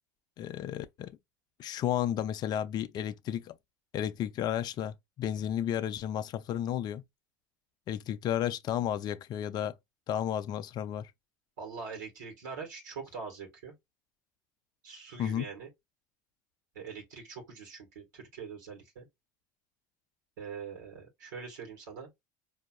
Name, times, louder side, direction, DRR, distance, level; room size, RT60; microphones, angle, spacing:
voice 1, 0.4-1.2 1.6-3.6 3.9-7.0 7.9-9.7 10.1-11.1 15.2-15.5, left 10 dB, 45° left, 0.5 m, -32 dB
voice 2, 11.6-13.7 14.8-15.7 16.7-19.1 20.4-22.1, right 5 dB, 80° right, 1.4 m, -43 dB
4.5 x 2.7 x 2.3 m
hypercardioid pair, 80°, 10 cm